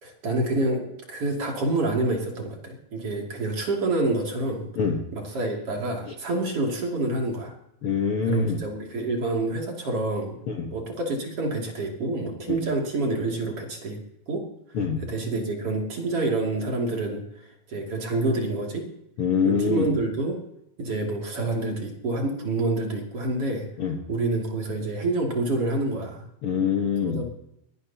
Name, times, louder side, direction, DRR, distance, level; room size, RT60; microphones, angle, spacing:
voice 1, 0.0-4.7 5.1-7.5 8.2-10.3 10.7-14.0 14.3-14.5 14.7-17.2 17.7-18.9 19.4-20.4 20.8-23.7 24.1-26.3 27.0-27.2, right 2 dB, 40° right, 0 dB, 3.2 m, -27 dB
voice 2, 7.8-8.6 10.5-10.7 12.5-12.6 14.7-15.0 19.2-19.9 23.8-23.9 26.4-27.2, left 6 dB, 90° left, 3 dB, 1.2 m, -24 dB
21.5 x 17.0 x 2.9 m, 0.79 s
omnidirectional pair, 4.6 m